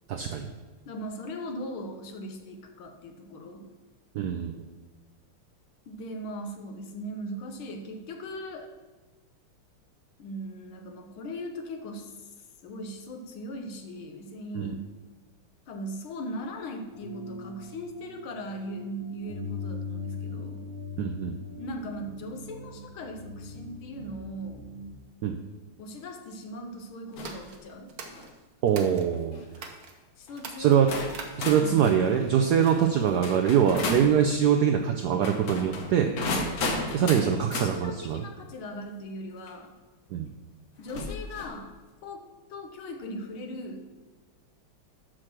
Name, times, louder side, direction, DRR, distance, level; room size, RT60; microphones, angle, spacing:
voice 1, 0.1-0.5 4.1-4.5 14.5-14.7 21.0-21.3 25.2-25.3 28.6-29.5 30.6-30.9 31.4-36.2 36.9-38.2 40.1-40.3, right 8 dB, 80° right, 4 dB, 0.9 m, -23 dB
voice 2, 0.9-3.7 5.9-8.7 10.2-12.3 12.6-14.8 15.7-20.7 21.6-24.6 25.8-27.9 29.6-29.7 30.2-30.8 31.5-31.8 37.0-39.7 40.8-41.7 42.0-43.8, equal, 75° left, 5 dB, 1.8 m, -39 dB
sound 1, 16.9-24.9, left 3 dB, 30° left, 1.8 m, -40 dB
sound 2, 27.1-29.1 29.5-29.9 30.3-31.7, right 5 dB, 55° right, 1.2 m, -43 dB
sound 3, 27.2-27.5 28.0-28.3 29.1-29.4 30.3-30.4 30.9-34.1 35.1-37.7 39.5-39.6 40.9-41.6, left 2 dB, 55° left, 1.2 m, -34 dB
6.7 x 6.1 x 6.0 m, 1.2 s
omnidirectional pair, 2.3 m